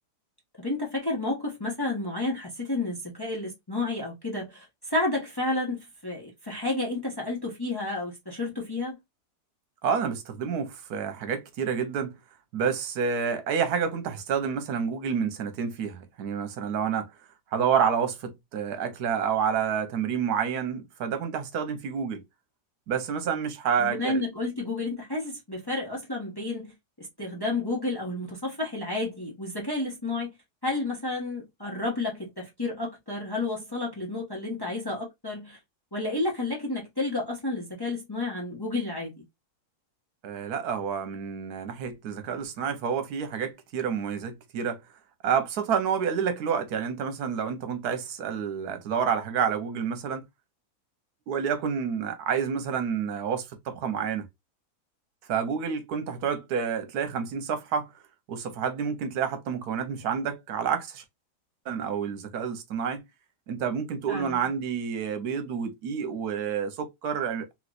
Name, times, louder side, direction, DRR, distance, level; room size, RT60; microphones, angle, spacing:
voice 1, 0.6-8.9 23.8-26.7 27.0-30.3 30.6-35.6 35.9-39.1 64.1-64.4, left 2 dB, 15° left, 1.0 m, -31 dB
voice 2, 9.8-12.1 12.5-17.1 17.5-22.2 22.9-24.2 40.2-44.8 45.2-50.3 51.3-54.3 55.3-57.9 58.3-61.0 61.7-63.0 63.5-67.5, right 7 dB, 75° right, 1.3 m, -29 dB
3.1 x 3.1 x 2.4 m
omnidirectional pair, 1.7 m